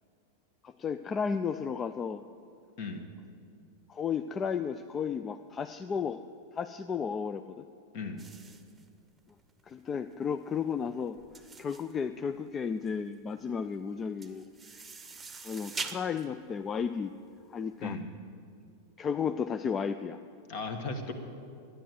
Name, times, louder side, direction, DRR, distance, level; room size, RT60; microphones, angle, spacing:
voice 1, 0.6-2.2 3.9-6.2 6.5-7.6 9.7-11.2 11.6-14.4 15.4-17.1 17.5-18.0 19.0-20.2, left 6 dB, 25° left, 10 dB, 0.4 m, -33 dB
sound 1, 8.2-17.8, right 4 dB, 10° right, 1.0 m, -45 dB
voice 2, 20.5-21.1, left 4 dB, 50° left, 6 dB, 1.7 m, -36 dB
12.0 x 10.0 x 9.3 m, 2.3 s
figure-of-eight pair, 90°, 0 cm